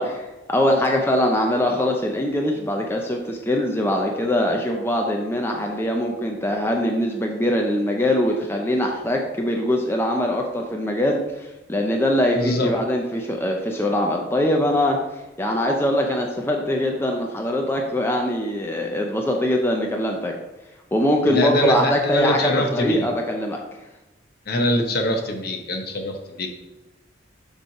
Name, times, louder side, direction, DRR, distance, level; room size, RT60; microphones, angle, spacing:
voice 1, 0.0-15.0 15.4-20.3 20.9-23.6, left 1 dB, 15° left, 1 dB, 0.6 m, -22 dB
voice 2, 12.4-12.7 21.3-23.1 24.5-26.5, left 1 dB, 55° left, 4 dB, 0.9 m, -23 dB
6.6 x 3.2 x 5.7 m, 1.0 s
head